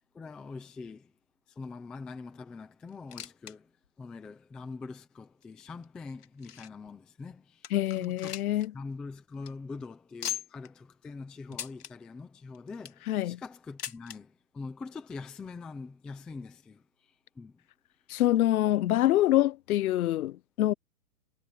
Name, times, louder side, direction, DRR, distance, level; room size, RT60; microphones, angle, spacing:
voice 1, 0.1-1.1 1.5-3.7 4.0-8.5 8.7-17.6, left 4 dB, ahead, 0.4 m, -44 dB
sound 1, 2.9-3.6 3.8-3.9 4.6-4.7 5.4-6.9 7.3-7.4 7.6-8.7 9.0-9.1 9.3-9.5 10.2-10.7 11.5-11.9 12.5-13.1 13.8-14.2 15.1-15.2 15.4-15.5 16.4-16.5, left 9 dB, 90° left, 2.9 m, -40 dB
voice 2, 7.7-8.7 13.1-13.4 18.1-20.7, left 14 dB, 70° left, 0.7 m, -25 dB
hypercardioid pair, 150°, 45 cm